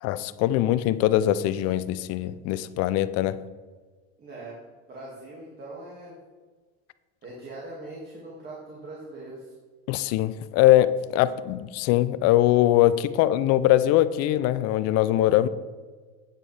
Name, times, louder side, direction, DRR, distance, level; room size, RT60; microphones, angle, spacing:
voice 1, 0.0-3.4 9.9-15.5, left 14 dB, 50° left, 15 dB, 0.5 m, -22 dB
voice 2, 4.2-4.6 4.9-6.1 7.2-9.5, right 2 dB, 30° right, -5 dB, 2.2 m, -41 dB
9.2 x 8.9 x 3.4 m, 1.4 s
supercardioid pair, 130°, 32 cm